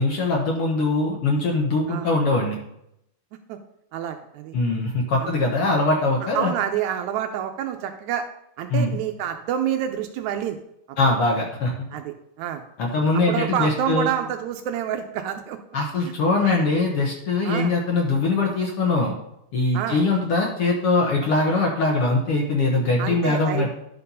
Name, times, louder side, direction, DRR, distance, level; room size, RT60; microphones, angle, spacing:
voice 1, 0.0-2.6 4.5-6.5 8.7-9.0 11.0-11.7 12.8-14.1 15.7-19.1 19.5-23.7, left 3 dB, 60° left, 0 dB, 1.6 m, -22 dB
voice 2, 3.9-4.6 5.2-5.3 6.3-8.3 8.6-10.6 11.9-12.6 13.1-15.6 16.0-16.7 17.4-17.7 19.7-20.1 21.2-21.3 23.0-23.7, right 9 dB, 80° right, 7 dB, 1.8 m, -28 dB
11.0 x 4.4 x 5.4 m, 0.79 s
omnidirectional pair, 3.7 m